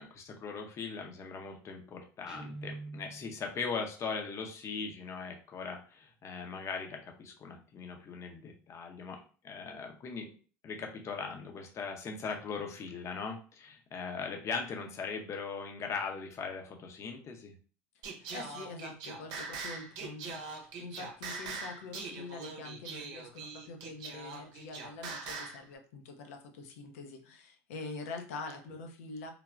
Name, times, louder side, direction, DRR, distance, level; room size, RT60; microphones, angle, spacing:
voice 1, 0.0-9.2 9.4-10.3 10.6-17.5, left 5 dB, 40° left, 3 dB, 0.7 m, -39 dB
Guitar, 2.3-3.4, right 2 dB, 10° right, 0.7 m, -44 dB
Singing, 18.0-25.6, right 4 dB, 60° right, 0.7 m, -42 dB
voice 2, 18.1-29.3, left 3 dB, 80° left, 4 dB, 0.6 m, -45 dB
3.2 x 2.2 x 2.4 m, 0.38 s
hypercardioid pair, 85°, 8 cm